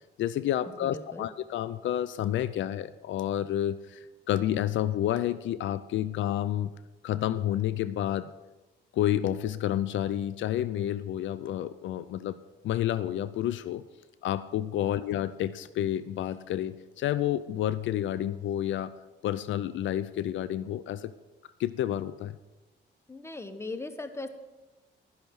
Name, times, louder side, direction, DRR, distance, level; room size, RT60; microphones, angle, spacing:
voice 1, 0.2-4.0 4.3-6.7 7.0-8.3 8.9-12.4 12.6-13.8 14.2-18.9 19.2-21.1 21.6-22.4, left 12 dB, 75° left, 16 dB, 0.5 m, -30 dB
voice 2, 0.8-1.3 14.9-15.0 23.1-24.3, left 2 dB, 15° left, 9 dB, 1.1 m, -39 dB
12.0 x 10.5 x 4.8 m, 1.1 s
cardioid pair, 90°, 20 cm